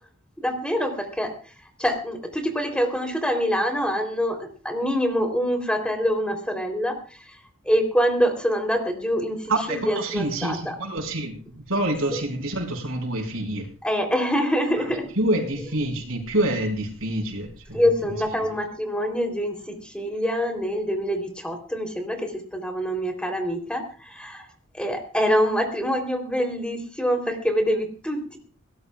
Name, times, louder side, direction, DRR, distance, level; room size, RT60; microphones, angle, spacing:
voice 1, 0.4-1.5 1.8-7.4 7.6-10.8 13.8-15.1 17.7-24.5 24.7-28.4, equal, 5° left, 4 dB, 3.4 m, -25 dB
voice 2, 9.5-13.7 15.2-17.8, right 1 dB, 80° right, 2 dB, 5.4 m, -27 dB
22.0 x 18.5 x 2.4 m, 0.38 s
head